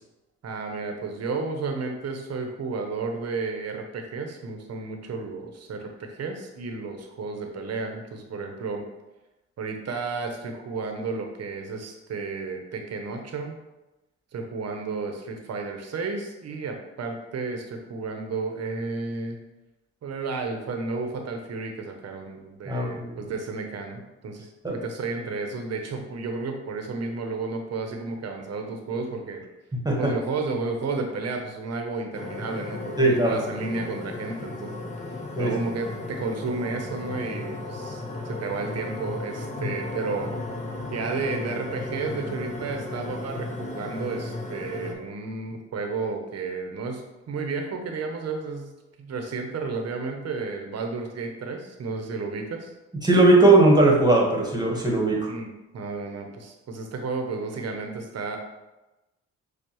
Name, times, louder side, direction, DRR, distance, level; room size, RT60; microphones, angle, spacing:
voice 1, 0.4-8.8 9.6-13.6 14.3-19.4 20.0-29.4 30.0-34.8 35.4-40.3 40.9-47.0 47.3-48.7 49.0-52.7 55.3-58.4, right 4 dB, 55° right, 3 dB, 0.9 m, -32 dB
voice 2, 22.7-23.1 24.6-24.7 29.8-30.1 33.0-33.4 35.4-35.5 39.6-39.7 53.0-55.3, right 2 dB, 15° right, -1 dB, 1.4 m, -19 dB
sound 1, 32.1-44.9, left 2 dB, 25° left, 0.9 m, -35 dB
6.7 x 2.3 x 3.1 m, 1.0 s
supercardioid pair, 65°, 30 cm